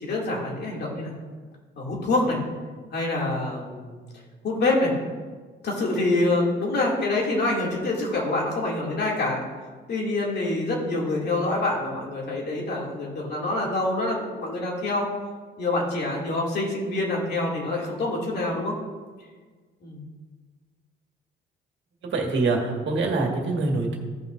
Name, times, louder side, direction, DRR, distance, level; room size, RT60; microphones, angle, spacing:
voice 1, 0.0-1.1 1.8-2.4 2.9-4.0 4.4-4.9 5.6-9.4 9.9-15.1 15.6-18.8 19.8-20.0, left 2 dB, 55° left, -3 dB, 2.6 m, -26 dB
voice 2, 22.0-24.0, right 3 dB, 65° right, 1 dB, 1.9 m, -24 dB
16.0 x 5.6 x 2.6 m, 1.5 s
cardioid pair, 90°, 20 cm